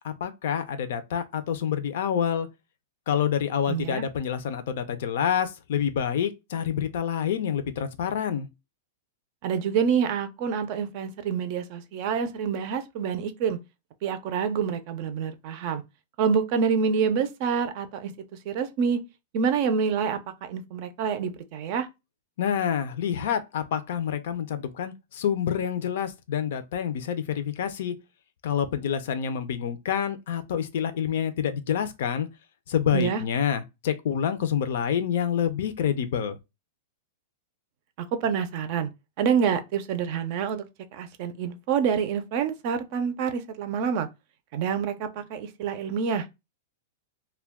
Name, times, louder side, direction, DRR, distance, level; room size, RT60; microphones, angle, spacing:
voice 1, 0.0-2.5 3.1-8.5 22.4-27.9 28.4-32.3 32.7-36.4, left 8 dB, 65° left, 0.5 m, -27 dB
voice 2, 3.7-4.0 9.4-13.6 14.0-15.8 16.2-18.1 18.5-19.0 19.3-21.9 32.9-33.2 38.2-38.9 39.2-40.7 40.9-44.1 44.5-46.3, right 6 dB, 45° right, 0.4 m, -27 dB
2.3 x 2.2 x 3.4 m
supercardioid pair, 150°, 0 cm